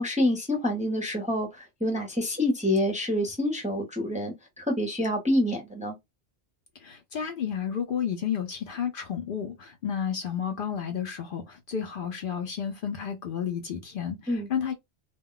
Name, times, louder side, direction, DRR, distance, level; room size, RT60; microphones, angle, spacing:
voice 1, 0.0-6.0 14.3-14.5, left 1 dB, 10° right, 0.6 m, -27 dB
voice 2, 6.8-14.7, left 8 dB, 60° left, 0.6 m, -31 dB
2.2 x 2.2 x 3.7 m
omnidirectional pair, 1.1 m